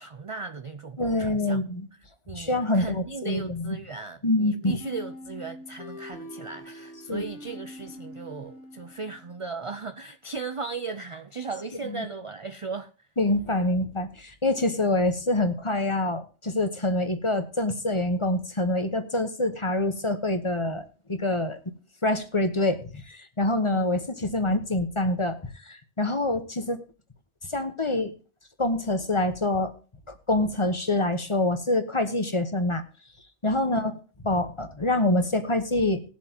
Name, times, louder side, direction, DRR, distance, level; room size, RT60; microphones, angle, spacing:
voice 1, 0.0-1.6 2.3-12.9 23.6-23.9 33.6-33.9, right 4 dB, 40° right, 0.4 m, -37 dB
voice 2, 1.0-1.9 2.3-3.8 4.2-4.7 7.1-7.3 11.9-12.1 13.2-20.8 21.1-21.6 22.0-25.4 25.6-26.8 27.5-28.1 28.6-29.7 30.1-32.8 33.4-34.0 34.2-36.0, left 2 dB, 25° left, 1.1 m, -26 dB
sound 1, 4.8-9.5, equal, 65° left, 3.3 m, -43 dB
20.0 x 7.3 x 2.9 m
omnidirectional pair, 1.2 m